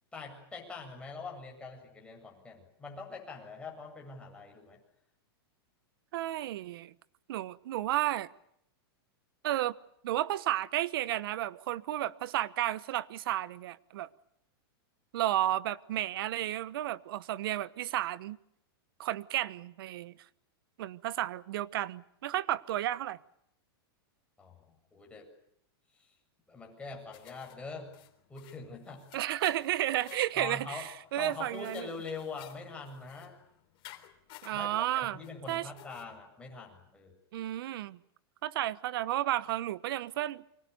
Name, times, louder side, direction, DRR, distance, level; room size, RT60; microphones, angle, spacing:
voice 1, 0.1-4.8 24.4-25.3 25.9-26.1 26.5-27.9 28.3-29.0 30.4-30.9 31.2-33.4 34.5-37.1, left 4 dB, 10° left, 7.8 m, -43 dB
voice 2, 6.1-6.9 7.3-8.3 9.4-9.8 10.0-14.1 15.1-18.4 19.0-20.1 20.8-23.2 29.1-31.9 34.4-35.2 35.5-35.7 37.3-38.0 38.4-40.4, right 13 dB, 65° right, 1.2 m, -32 dB
sound 1, 27.1-36.0, left 14 dB, 40° left, 3.6 m, -55 dB
29.0 x 24.5 x 7.0 m
supercardioid pair, 140°, 13 cm